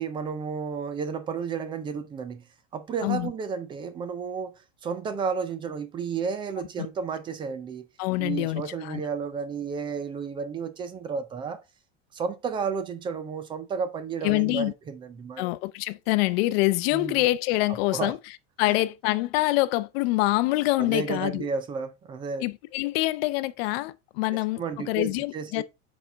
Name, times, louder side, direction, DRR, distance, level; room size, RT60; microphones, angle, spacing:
voice 1, 0.0-2.5 2.7-4.5 4.8-7.9 8.2-11.6 12.1-15.5 16.9-17.2 17.7-18.2 18.6-18.8 20.8-22.4 24.3-25.6, right 6 dB, 15° right, 0.4 m, -32 dB
voice 2, 8.0-9.0 14.2-14.7 15.4-18.2 18.6-21.5 22.4-25.6, left 19 dB, 55° left, 0.6 m, -25 dB
6.8 x 4.3 x 3.4 m
supercardioid pair, 150°, 36 cm